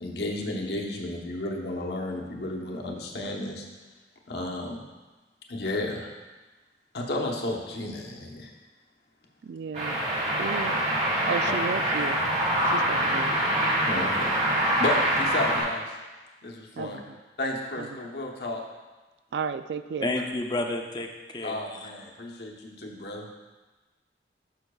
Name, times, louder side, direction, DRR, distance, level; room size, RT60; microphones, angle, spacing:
voice 1, 0.0-3.7 4.3-4.8 5.5-6.1 6.9-8.5 10.6-10.7 13.8-14.4 14.8-16.0 16.4-17.0 17.4-18.6 21.4-23.3, left 2 dB, 65° left, 0 dB, 1.0 m, -32 dB
voice 2, 9.4-10.0 10.4-10.8 11.2-12.2 12.6-13.3 16.8-17.2 17.8-17.9 19.3-20.1, right 6 dB, 75° right, 11 dB, 0.3 m, -33 dB
sound 1, 9.7-15.6, right 1 dB, 40° right, 2.3 m, -25 dB
voice 3, 20.0-21.9, left 2 dB, 25° left, 3 dB, 0.6 m, -31 dB
11.5 x 5.7 x 2.3 m, 1.2 s
head